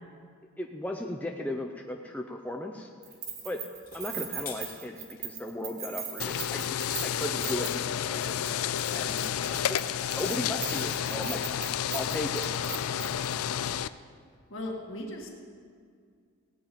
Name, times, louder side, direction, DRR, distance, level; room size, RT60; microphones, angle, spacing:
voice 1, 0.6-2.9 3.4-3.6 3.9-8.5 8.9-9.2 9.5-9.8 10.1-11.4 11.9-12.4, left 1 dB, 5° left, 2 dB, 0.5 m, -36 dB
Keys jangling, 3.0-8.0 8.2-8.5 8.8-13.3, right 8 dB, 45° right, 1.8 m, -39 dB
sound 1, 3.7-5.3 9.2-10.8, left 6 dB, 40° left, 1.9 m, -47 dB
sound 2, 6.2-13.9, left 9 dB, 80° left, 0.4 m, -31 dB
voice 2, 14.5-15.3, left 1 dB, 60° left, 0 dB, 1.9 m, -37 dB
17.0 x 8.9 x 5.1 m, 2.1 s
head